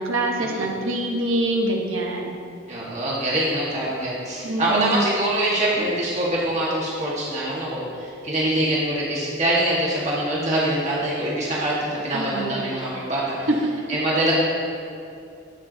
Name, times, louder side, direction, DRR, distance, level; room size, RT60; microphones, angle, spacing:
voice 1, 0.0-2.3 4.4-5.1 12.1-12.7 13.5-13.7, right 1 dB, 90° right, 0 dB, 1.3 m, -25 dB
voice 2, 2.7-13.5 13.9-14.3, right 1 dB, 35° right, -7 dB, 1.6 m, -24 dB
12.0 x 8.1 x 2.8 m, 2.6 s
head